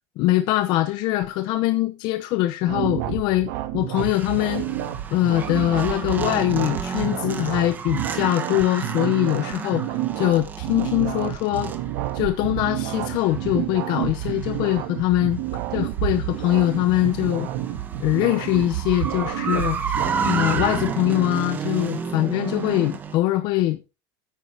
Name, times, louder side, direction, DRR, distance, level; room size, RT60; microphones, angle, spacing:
voice 1, 0.2-4.7 5.1-11.7 12.1-15.4 15.7-17.5 18.0-23.8, left 15 dB, 50° left, 0.7 m, -23 dB
sound 1, 2.7-21.0, right 13 dB, 90° right, 1.7 m, -30 dB
sound 2, 4.0-23.2, right 5 dB, 20° right, 0.9 m, -32 dB
9.4 x 9.3 x 3.4 m
cardioid pair, 180°, 10 cm